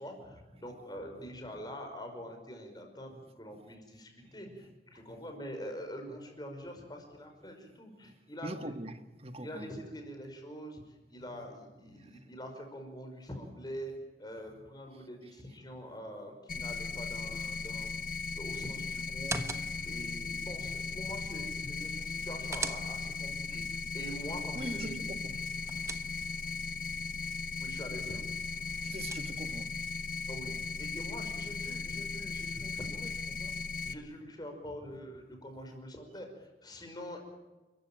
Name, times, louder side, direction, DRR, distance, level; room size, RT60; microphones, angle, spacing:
voice 1, 0.0-8.7 9.4-13.9 14.2-18.0 18.3-25.2 27.6-28.2 30.3-33.5 33.8-37.2, equal, 25° left, 5.3 m, -45 dB
voice 2, 4.2-5.3 6.1-6.2 7.6-8.2 8.4-9.7 11.2-11.5 11.9-12.3 14.4-14.6 14.9-15.4 17.3-17.4 23.5-23.7 24.4-25.4 25.8-26.0 28.8-29.7, right 1 dB, 35° right, 1.6 m, -45 dB
sound 1, 16.5-33.9, left 4 dB, 50° left, 1.1 m, -37 dB
sound 2, 19.1-20.0 22.0-23.3 25.3-26.5 28.5-29.6, right 3 dB, 15° right, 1.2 m, -42 dB
29.5 x 15.0 x 9.0 m
head